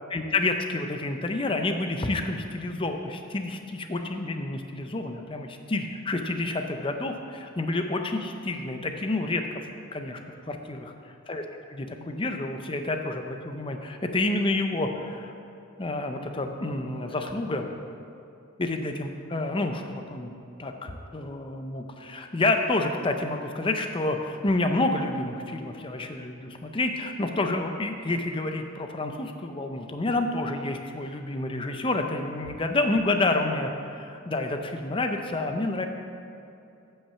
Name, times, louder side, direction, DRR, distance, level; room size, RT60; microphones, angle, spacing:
voice 1, 0.1-9.6 9.9-10.2 10.5-10.9 11.3-11.4 11.7-15.3 15.8-17.7 18.6-20.3 20.6-35.9, left 2 dB, 25° left, 5 dB, 0.6 m, -29 dB
8.8 x 5.6 x 7.0 m, 2.7 s
head